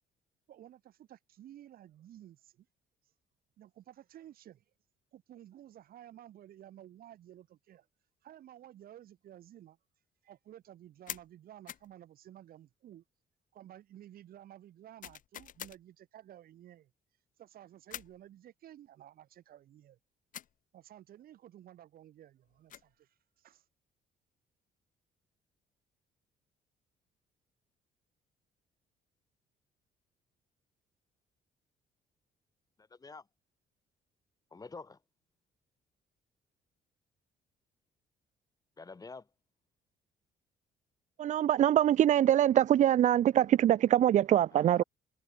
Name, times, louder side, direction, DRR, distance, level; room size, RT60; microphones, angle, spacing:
voice 1, 0.5-2.7 3.6-4.6 5.1-7.9 8.2-9.8 10.2-13.0 13.5-16.9 17.4-20.0 20.7-23.6, right 12 dB, 65° right, 5.7 m, -54 dB
sound 1, 11.1-11.3 11.7-11.9 15.0-15.8 17.9-18.2 20.3-20.6 22.4-22.9, left 11 dB, 55° left, 1.1 m, -45 dB
voice 2, 32.8-33.3 34.5-35.0 38.8-39.3 44.5-44.8, left 4 dB, 20° left, 3.5 m, -48 dB
voice 3, 41.2-44.8, right 11 dB, 50° right, 0.5 m, -24 dB
cardioid pair, 125°, 16 cm